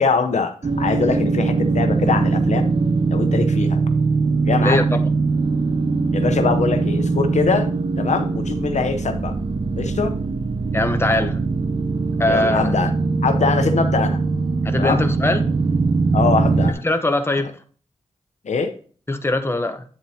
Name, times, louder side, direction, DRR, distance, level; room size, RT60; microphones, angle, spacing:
voice 1, 0.0-2.7 3.1-3.8 4.4-4.8 6.1-7.7 8.0-9.4 9.8-10.1 12.3-12.9 13.2-14.2 14.8-15.1 16.1-16.8 18.4-18.7, left 5 dB, 80° left, 7 dB, 0.8 m, -22 dB
sound 1, 0.6-16.7, right 4 dB, 50° right, 0.7 m, -21 dB
voice 2, 4.6-5.1 10.7-11.4 12.2-12.7 14.6-15.5 16.8-17.5 19.1-19.8, left 2 dB, 20° left, 8 dB, 0.9 m, -21 dB
8.7 x 7.4 x 2.8 m, 0.43 s
cardioid pair, 65°, 12 cm